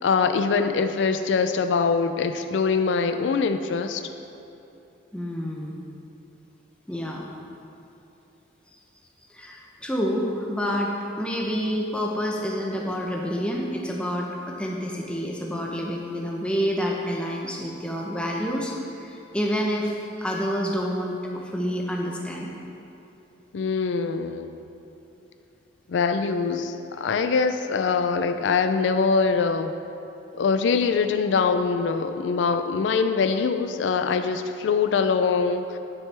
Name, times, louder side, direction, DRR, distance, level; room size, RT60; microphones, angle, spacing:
voice 1, 0.0-4.0 23.5-24.5 25.9-29.7 30.3-35.8, left 5 dB, 80° left, 8 dB, 0.4 m, -23 dB
voice 2, 5.1-5.8 6.9-7.3 9.3-10.9 11.2-22.5, equal, 5° left, -1 dB, 0.7 m, -28 dB
10.5 x 6.1 x 3.4 m, 2.9 s
head